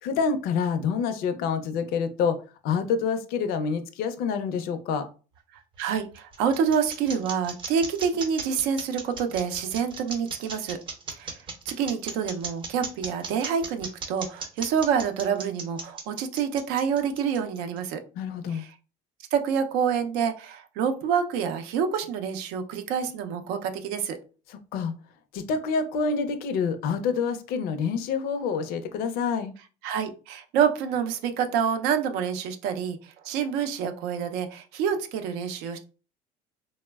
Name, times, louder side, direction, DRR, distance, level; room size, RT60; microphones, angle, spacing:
voice 1, 0.0-2.4 2.6-5.1 18.2-18.6 24.7-24.9 25.3-29.5, left 5 dB, 65° left, 10 dB, 0.4 m, -27 dB
sound 1, 5.7-17.8, right 4 dB, 30° right, 0.6 m, -36 dB
voice 2, 5.8-10.8 11.1-11.3 11.7-18.0 18.5-18.7 19.3-24.2 29.8-35.8, right 7 dB, 80° right, 7 dB, 0.5 m, -27 dB
3.1 x 2.0 x 2.2 m, 0.35 s
cardioid pair, 125°, 16 cm